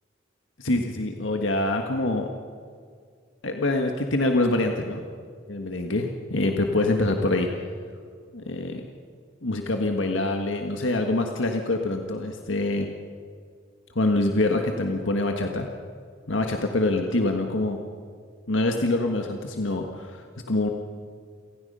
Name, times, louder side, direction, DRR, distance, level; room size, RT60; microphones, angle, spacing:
voice 1, 0.6-2.3 3.4-5.0 5.5-7.5 8.3-8.8 9.4-12.9 13.9-15.7 16.3-17.8 18.5-20.7, left 2 dB, 80° left, 3 dB, 1.6 m, -25 dB
29.0 x 17.0 x 5.6 m, 2.1 s
head